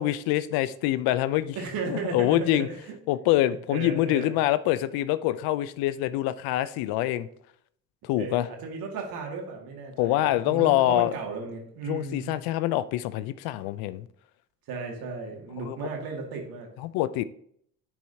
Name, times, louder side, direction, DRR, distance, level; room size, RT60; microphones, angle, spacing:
voice 1, 0.0-1.6 1.9-2.7 3.1-7.3 8.0-8.5 10.0-11.1 11.9-14.1 15.6-15.8 16.8-17.2, left 14 dB, 75° left, 14 dB, 0.5 m, -25 dB
voice 2, 1.6-2.8 3.7-4.3 8.2-12.4 14.7-16.7, right 4 dB, 65° right, 1 dB, 2.2 m, -35 dB
10.0 x 4.8 x 2.8 m, 0.67 s
supercardioid pair, 90°, 37 cm